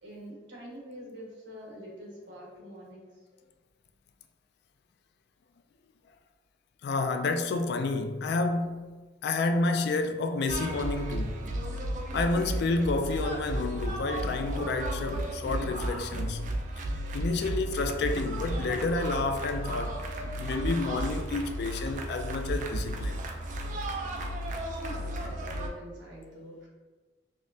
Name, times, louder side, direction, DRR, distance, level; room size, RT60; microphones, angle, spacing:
voice 1, 0.0-3.2 24.8-26.7, right 1 dB, 80° right, 1.2 m, -45 dB
voice 2, 6.8-11.5 12.1-16.5 17.1-20.0 20.4-23.2, left 3 dB, 60° left, 0.3 m, -30 dB
sound 1, 10.5-25.7, right 1 dB, 45° right, 0.4 m, -34 dB
5.0 x 2.1 x 2.6 m
head